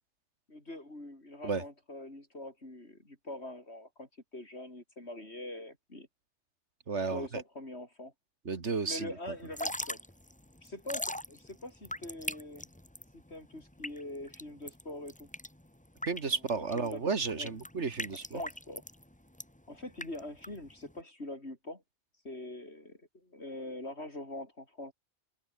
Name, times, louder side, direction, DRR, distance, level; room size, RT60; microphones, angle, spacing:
voice 1, 0.5-6.1 7.1-8.1 8.8-10.0 10.6-12.6 13.1-15.3 16.3-17.1 17.4-17.5 18.3-18.8 19.7-21.8 22.2-24.9, left 1 dB, 70° left, 6.7 m, -44 dB
voice 2, 6.9-7.4 8.5-9.1 16.1-18.4, right 4 dB, 85° right, 2.3 m, -33 dB
Drip / Trickle dribble, 9.4-21.0, left 1 dB, 5° left, 1.6 m, -41 dB
omnidirectional pair, 1.2 m